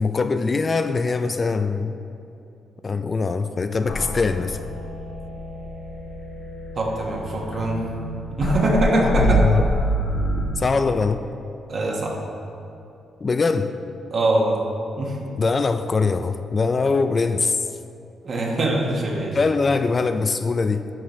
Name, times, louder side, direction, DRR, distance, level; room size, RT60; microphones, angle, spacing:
voice 1, 0.0-2.0 2.8-4.6 9.0-9.7 10.6-11.3 13.2-13.7 15.4-17.7 19.3-20.9, left 4 dB, 35° left, 9 dB, 0.3 m, -22 dB
sound 1, 3.9-10.4, equal, 75° left, 1.1 m, -26 dB
voice 2, 6.8-7.8 8.3-9.4 11.7-12.2 14.1-14.6 15.0-15.2 18.2-19.4, right 2 dB, 50° right, -1 dB, 1.4 m, -22 dB
10.5 x 6.4 x 3.1 m, 2.8 s
cardioid pair, 105°, 0 cm